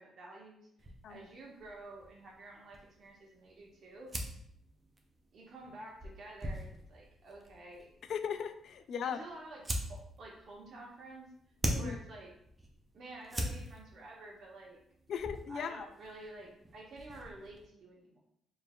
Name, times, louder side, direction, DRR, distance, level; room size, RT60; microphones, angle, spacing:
voice 1, 0.0-4.1 5.3-7.9 9.0-11.3 11.8-12.3 12.9-14.8 15.5-18.2, right 2 dB, 65° right, -3 dB, 1.3 m, -50 dB
sound 1, 0.8-17.7, right 1 dB, 20° right, 0.7 m, -44 dB
voice 2, 8.1-9.2 11.7-12.0 15.1-15.9, left 7 dB, 65° left, 10 dB, 0.3 m, -37 dB
4.9 x 3.2 x 2.3 m, 0.70 s
cardioid pair, 90°, 0 cm